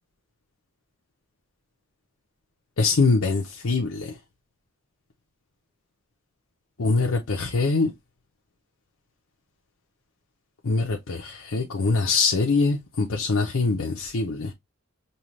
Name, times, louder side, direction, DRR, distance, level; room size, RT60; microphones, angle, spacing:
voice 1, 2.8-4.0 6.8-7.9 10.7-14.5, left 3 dB, 90° left, 0.7 m, -23 dB
5.5 x 2.3 x 3.0 m
head